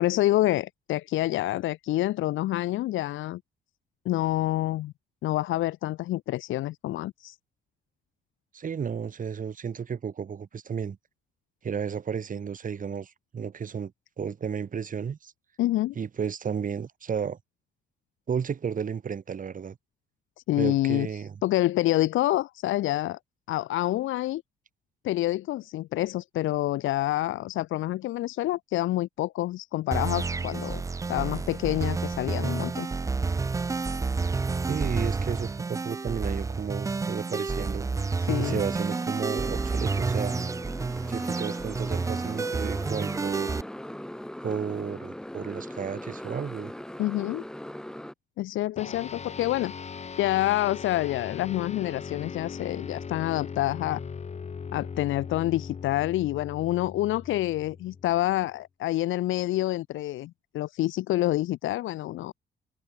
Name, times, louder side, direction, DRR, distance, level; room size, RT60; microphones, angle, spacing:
voice 1, 0.0-3.4 4.0-4.9 5.2-7.4 15.6-15.9 20.5-21.1 21.4-23.2 23.5-24.4 25.0-30.8 31.1-32.9 38.2-38.6 47.0-47.4 48.4-49.7 50.2-54.0 54.7-62.3, left 15 dB, 80° left, 0.7 m, -27 dB
voice 2, 8.5-11.0 11.6-13.9 14.2-15.3 16.0-17.4 18.3-19.8 20.6-21.4 34.6-37.9 38.4-40.4 41.1-43.6 44.4-46.7, right 7 dB, 40° right, 1.8 m, -33 dB
sound 1, 29.9-43.6, right 4 dB, 15° right, 0.4 m, -30 dB
Motorcycle, 38.4-48.1, left 1 dB, 5° left, 1.1 m, -40 dB
sound 2, 48.8-58.5, left 6 dB, 35° left, 1.1 m, -39 dB
cardioid pair, 90°, 20 cm